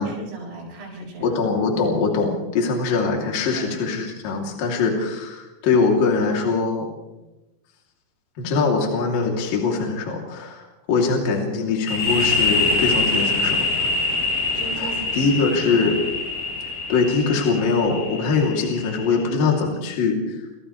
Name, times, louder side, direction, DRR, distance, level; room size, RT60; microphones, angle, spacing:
voice 1, 0.0-1.4 3.5-3.8 7.2-7.3 14.5-15.9, right 1 dB, 70° right, -8 dB, 10.5 m, -37 dB
voice 2, 1.2-6.9 8.4-13.9 14.8-16.0 16.9-20.5, left 4 dB, 45° left, -1 dB, 4.3 m, -22 dB
sound 1, 11.9-19.3, left 3 dB, 70° left, 8.8 m, -24 dB
29.0 x 29.0 x 3.3 m, 1.0 s
omnidirectional pair, 6.0 m